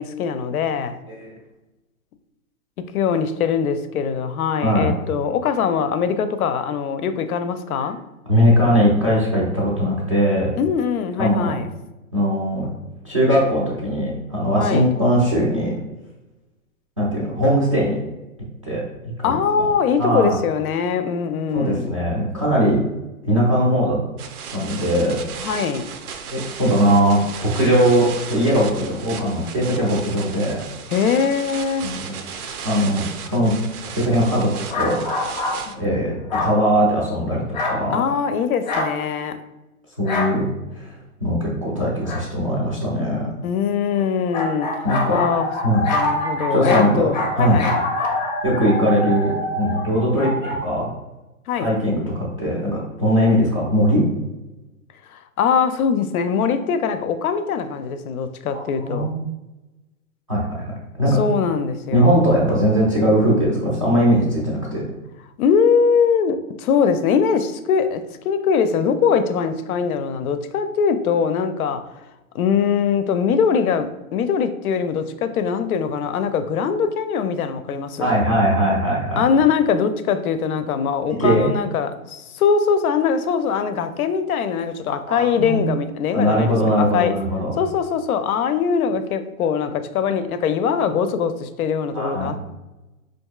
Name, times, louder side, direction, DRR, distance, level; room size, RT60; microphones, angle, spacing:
voice 1, 0.0-1.0 2.8-8.0 10.6-11.7 14.6-14.9 19.2-21.9 25.4-25.9 30.9-31.9 37.9-39.4 43.4-44.7 45.1-45.5 45.9-47.8 51.5-51.7 55.1-59.1 61.2-62.2 65.4-71.9 72.3-78.1 79.2-87.2 87.6-92.5, left 6 dB, 80° left, 10 dB, 0.5 m, -22 dB
voice 2, 4.6-4.9 8.3-10.6 11.2-11.6 12.1-12.7 13.0-15.7 17.0-18.0 18.6-18.8 19.2-19.7 20.0-20.4 21.5-22.8 23.2-24.0 24.5-25.2 26.3-30.6 31.8-32.2 32.6-33.5 33.9-35.0 35.7-38.0 40.0-40.4 40.8-40.9 41.2-43.3 44.8-45.2 45.6-45.8 46.5-47.1 47.4-47.6 48.4-50.3 50.6-50.9 51.6-54.1 58.5-59.2 60.3-60.7 61.0-61.2 61.9-64.8 78.0-79.2 81.2-81.5 85.1-85.6 86.1-87.5 91.9-92.3, equal, 25° right, -7 dB, 0.3 m, -20 dB
sound 1, 24.2-35.7, right 6 dB, 90° right, 0.6 m, -35 dB
sound 2, 34.7-35.6 36.3-36.6 37.5-37.8 38.7-38.9 40.1-40.3 42.0-42.2 44.3-50.6, left 2 dB, 30° left, 0.5 m, -25 dB
4.7 x 2.5 x 2.3 m, 1.0 s
hypercardioid pair, 155°, 43 cm